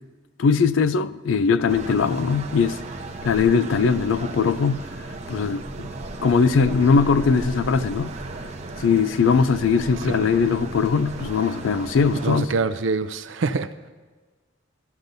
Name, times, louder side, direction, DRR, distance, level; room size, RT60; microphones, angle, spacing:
voice 1, 0.4-2.8 3.2-4.9 5.3-5.9 6.2-8.1 8.8-12.5, left 5 dB, 75° left, 0.4 m, -20 dB
sound 1, 1.7-12.4, right 2 dB, 35° right, 0.8 m, -35 dB
voice 2, 12.2-13.9, right 4 dB, 70° right, 0.5 m, -25 dB
13.5 x 13.0 x 2.6 m
head